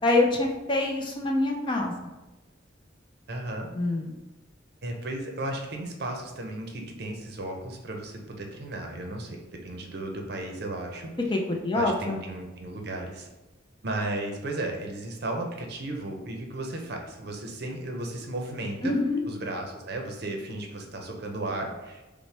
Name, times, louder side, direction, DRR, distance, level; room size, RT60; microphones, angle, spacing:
voice 1, 0.0-2.1 3.7-4.1 11.3-12.2 18.8-19.2, left 2 dB, 25° left, 1 dB, 0.4 m, -25 dB
voice 2, 3.3-3.7 4.8-11.1 11.7-13.3 13.8-19.0 19.3-22.0, right 2 dB, 55° right, 2 dB, 0.6 m, -34 dB
5.5 x 2.1 x 3.3 m, 1.1 s
head